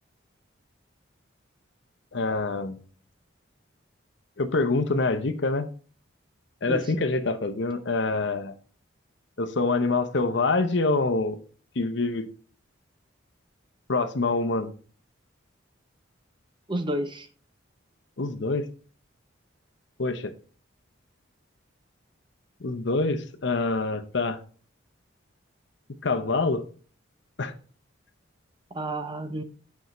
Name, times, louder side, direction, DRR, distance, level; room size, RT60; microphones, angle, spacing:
voice 1, 2.1-2.8 4.4-5.7 6.6-8.5 9.4-11.4 11.8-12.3 13.9-14.7 18.2-18.7 20.0-20.3 22.6-24.4 26.0-26.6 27.4-27.5, left 3 dB, 60° left, 0.7 m, -25 dB
voice 2, 6.6-7.1 16.7-17.3 28.7-29.4, right 1 dB, 25° right, 0.6 m, -31 dB
8.0 x 5.7 x 3.1 m
head